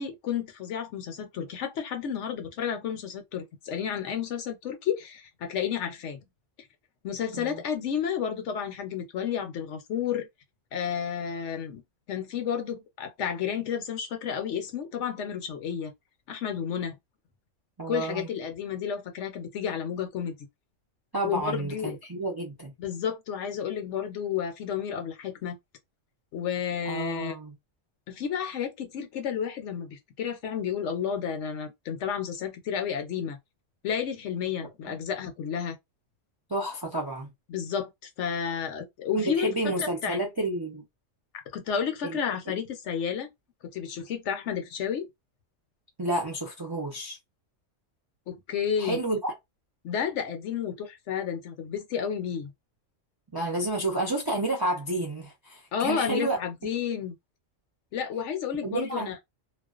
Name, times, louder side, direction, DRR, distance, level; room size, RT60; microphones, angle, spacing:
voice 1, 0.0-6.2 7.0-10.3 10.7-11.8 12.1-15.9 16.3-16.9 17.9-20.4 21.2-22.0 22.8-25.6 26.3-27.4 28.1-33.4 33.8-35.8 37.5-39.5 39.8-40.2 41.5-43.3 43.7-45.1 48.3-49.0 49.8-52.5 55.7-57.1 57.9-59.1, left 8 dB, 70° left, 0.9 m, -31 dB
voice 2, 17.8-18.3 21.1-22.7 26.8-27.5 34.9-35.0 36.5-37.3 39.1-40.8 42.0-42.2 42.5-42.6 46.0-47.2 48.8-49.3 53.3-56.4 56.6-56.7 58.6-59.1, right 2 dB, 30° right, 0.4 m, -30 dB
2.4 x 2.2 x 2.3 m
omnidirectional pair, 1.3 m